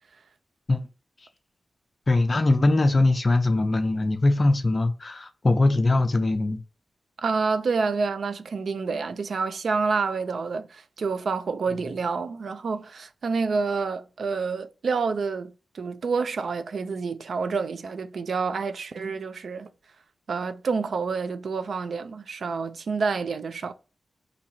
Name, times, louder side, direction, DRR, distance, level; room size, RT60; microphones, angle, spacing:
voice 1, 2.1-6.6, left 2 dB, 30° left, 0.5 m, -21 dB
voice 2, 7.2-19.7 20.3-23.7, right 4 dB, 60° right, 0.3 m, -28 dB
2.8 x 2.6 x 4.2 m
wide cardioid pair, 170°, 0 cm